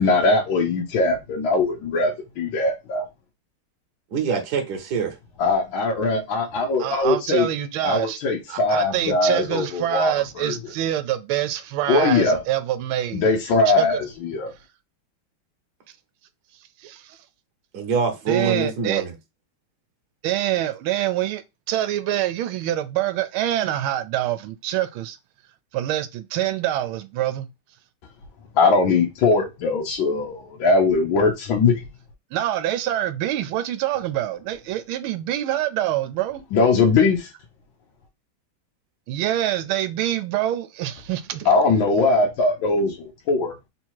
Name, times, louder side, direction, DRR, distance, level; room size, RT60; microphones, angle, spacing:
voice 1, 0.0-3.1 5.4-7.5 7.8-10.5 11.9-12.4 13.1-14.5 28.6-31.8 36.5-37.3 41.4-43.5, left 3 dB, 70° left, 1.5 m, -21 dB
voice 2, 4.1-5.1 17.7-19.1, right 5 dB, 55° right, 1.4 m, -24 dB
voice 3, 6.8-8.2 8.5-13.3 13.6-14.0 16.8-17.2 18.3-19.0 20.2-25.2 25.7-27.5 32.3-36.4 39.1-41.5, right 12 dB, 80° right, 1.4 m, -25 dB
3.8 x 2.8 x 4.5 m
omnidirectional pair, 2.3 m